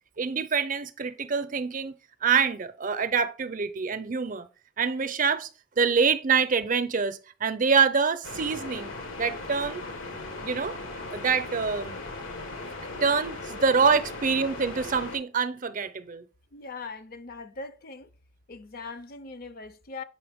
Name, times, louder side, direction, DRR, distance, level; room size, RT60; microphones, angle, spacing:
voice 1, 0.2-1.9 2.2-4.5 4.8-5.5 5.8-9.8 10.4-10.8 11.1-12.0 13.0-16.2, right 5 dB, 40° right, 0.6 m, -25 dB
sound 1, 8.2-15.2, left 2 dB, 80° left, 1.5 m, -38 dB
voice 2, 16.5-18.1 18.5-20.0, left 4 dB, 50° left, 0.6 m, -40 dB
7.7 x 5.6 x 3.5 m
head